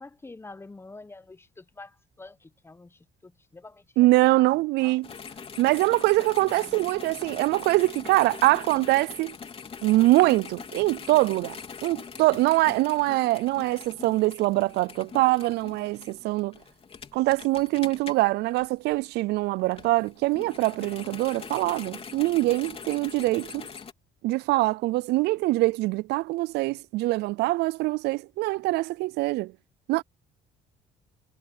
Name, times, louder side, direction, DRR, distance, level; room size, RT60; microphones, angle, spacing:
voice 1, 0.0-3.8 4.3-5.0 6.6-6.9, left 3 dB, 15° left, 1.2 m, -47 dB
voice 2, 4.0-5.1 5.6-9.3 9.8-11.6 11.8-16.5 17.1-23.7 24.2-29.5 29.9-30.0, right 19 dB, 80° right, 0.4 m, -23 dB
sound 1, 5.0-19.1 19.6-23.9, left 6 dB, 35° left, 3.6 m, -42 dB
cardioid pair, 110°, 17 cm